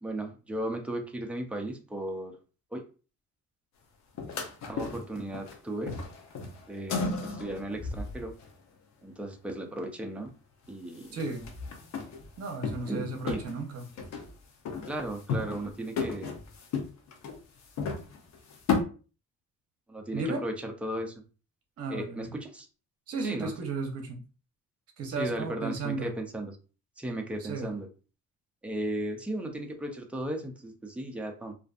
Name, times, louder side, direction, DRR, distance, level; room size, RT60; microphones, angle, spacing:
voice 1, 0.0-2.3 2.7-2.8 4.7-5.9 6.7-8.3 9.0-10.3 10.7-11.2 12.9-13.4 14.9-16.4 19.9-21.1 21.9-22.7 23.2-23.5 25.2-26.5 27.0-27.9 28.6-31.5, right 1 dB, 5° right, 3 dB, 0.3 m, -35 dB
sound 1, 4.2-5.6 5.8-8.5 10.7-10.8 11.0-13.0 13.3-14.3 14.7-15.7 16.0-18.8, left 4 dB, 60° left, 0.7 m, -34 dB
voice 2, 11.1-11.5 12.4-13.9 20.1-20.4 21.8-22.3 23.1-24.2 25.0-26.1 27.4-27.8, right 3 dB, 50° right, 4 dB, 0.7 m, -34 dB
2.5 x 2.4 x 2.4 m, 0.35 s
cardioid pair, 140°, 31 cm